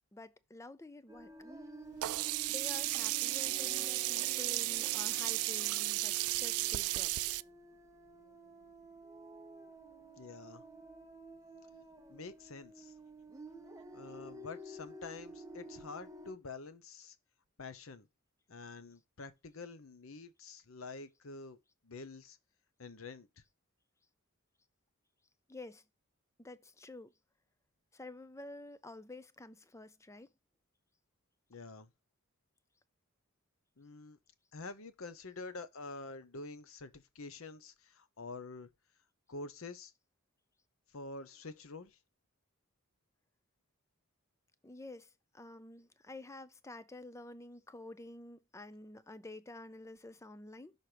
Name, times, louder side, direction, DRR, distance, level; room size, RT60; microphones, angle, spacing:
voice 1, 0.1-1.3 2.5-7.4 25.5-25.8 26.4-27.1 27.9-30.3 44.6-45.1 45.3-50.7, left 2 dB, 15° left, 0.5 m, -50 dB
sound 1, 1.1-16.3, right 1 dB, 15° right, 0.9 m, -51 dB
Sink (filling or washing), 2.0-7.4, right 19 dB, 80° right, 0.3 m, -34 dB
voice 2, 10.2-10.6 12.1-12.9 13.9-17.2 17.6-18.1 18.5-21.6 21.8-22.4 22.8-23.3 31.5-31.9 33.8-34.2 34.5-38.7 39.3-39.9 40.9-42.0, left 3 dB, 65° left, 0.8 m, -47 dB
6.2 x 4.3 x 4.9 m
head